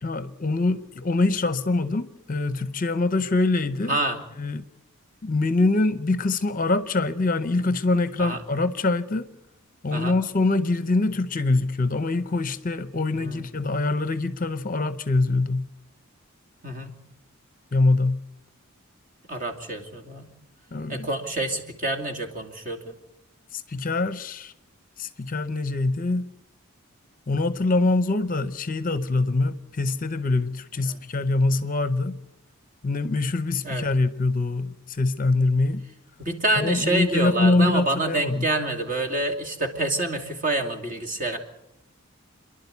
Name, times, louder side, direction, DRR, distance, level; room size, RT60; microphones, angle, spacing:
voice 1, 0.0-4.0 4.4-4.6 5.2-9.3 9.8-15.7 17.7-18.2 20.7-21.1 23.5-24.5 25.0-26.3 27.3-32.2 32.8-35.8 36.6-38.5, left 2 dB, 40° left, 0.7 m, -24 dB
voice 2, 3.9-4.2 8.2-8.4 9.9-10.2 13.2-13.4 16.6-17.0 19.3-20.3 20.9-23.0 30.9-31.0 33.6-33.9 36.2-41.4, right 2 dB, 40° right, 2.6 m, -27 dB
29.5 x 11.5 x 8.2 m
head